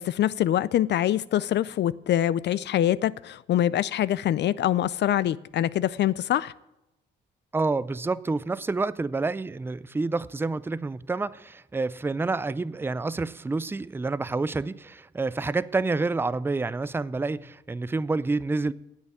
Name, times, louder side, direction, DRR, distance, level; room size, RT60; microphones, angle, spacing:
voice 1, 0.0-6.5, left 12 dB, 60° left, 0.4 m, -24 dB
voice 2, 7.5-18.7, right 3 dB, 10° right, 0.4 m, -28 dB
9.6 x 8.2 x 8.5 m
cardioid pair, 90°, 20 cm